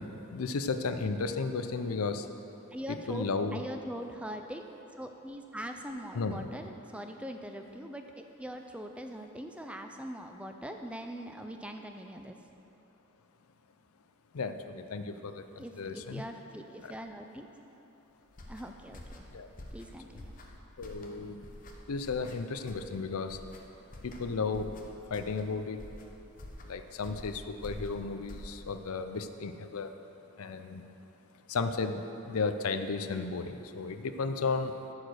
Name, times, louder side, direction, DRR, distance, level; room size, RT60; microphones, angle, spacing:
voice 1, 0.0-2.3 2.9-3.6 6.1-6.5 14.3-16.2 16.8-16.9 19.3-19.5 20.8-21.5 21.9-23.4 24.0-24.8 25.1-25.8 26.6-30.0 30.4-30.8 31.5-34.7, left 4 dB, 85° left, 8 dB, 0.5 m, -34 dB
voice 2, 2.7-4.7 5.0-12.4 15.6-17.5 18.5-19.3 19.7-20.3, right 1 dB, 5° right, 5 dB, 0.4 m, -42 dB
sound 1, 18.3-28.9, left 1 dB, 40° left, 0.9 m, -48 dB
13.0 x 4.9 x 6.3 m, 3.0 s
head